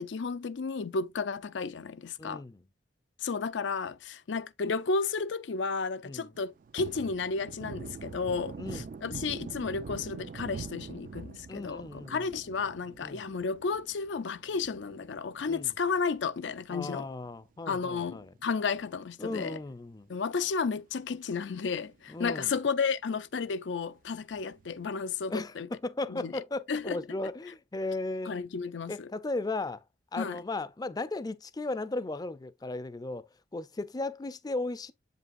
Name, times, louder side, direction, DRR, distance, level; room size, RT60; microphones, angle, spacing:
voice 1, 0.0-2.4 3.2-17.1 17.7-19.6 20.1-25.7 26.1-26.3 26.7-27.0 28.3-29.1 30.2-30.4, left 5 dB, 80° left, 0.5 m, -32 dB
voice 2, 2.2-2.6 6.0-6.3 8.6-8.9 11.5-12.3 13.0-13.3 15.5-15.7 16.7-18.3 19.2-20.1 22.1-22.5 25.3-28.4 28.9-29.8 30.1-33.2 33.5-34.9, left 2 dB, 20° left, 0.4 m, -36 dB
Thunder, 6.3-17.1 17.5-17.6 17.9-19.4 19.7-19.9 20.2-21.0 21.4-21.5 21.9-22.0 24.3-24.9, right 5 dB, 45° right, 0.3 m, -45 dB
7.7 x 5.4 x 2.5 m
head